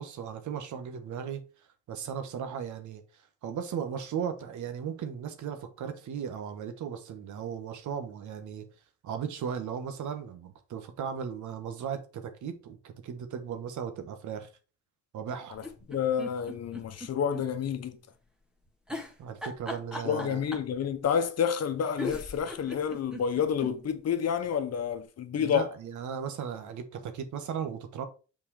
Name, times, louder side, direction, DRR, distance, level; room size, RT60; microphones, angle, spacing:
voice 1, 0.0-1.4 1.9-8.7 9.0-14.5 15.1-15.6 19.2-20.4 25.3-28.0, right 7 dB, 75° right, 1.4 m, -36 dB
voice 2, 15.5-18.0 19.9-25.7, left 8 dB, 55° left, 1.1 m, -29 dB
sound 1, 15.5-17.4 17.8-17.9 18.9-20.8 21.6-21.7 22.0-23.7 24.2-24.3 24.4-24.5, left 1 dB, 5° right, 1.7 m, -39 dB
6.1 x 4.6 x 4.8 m
cardioid pair, 90°, 30 cm